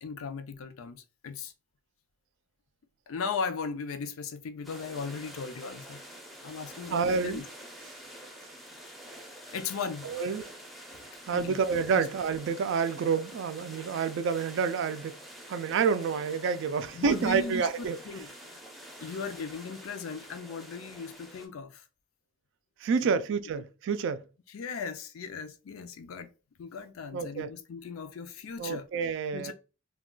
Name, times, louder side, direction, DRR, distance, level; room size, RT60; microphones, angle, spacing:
voice 1, 0.0-1.5 3.1-6.0 6.4-7.4 9.5-10.2 11.3-11.6 11.9-12.1 16.9-18.6 19.0-21.8 23.0-23.2 24.5-26.3 26.6-29.5, left 5 dB, 85° left, 0.4 m, -37 dB
sound 1, 4.6-21.5, right 1 dB, ahead, 0.5 m, -47 dB
voice 2, 6.9-7.4 10.0-10.5 11.3-15.2 15.5-18.0 22.8-24.2 27.1-27.5 28.6-29.5, right 5 dB, 65° right, 0.3 m, -28 dB
2.3 x 2.2 x 3.6 m
head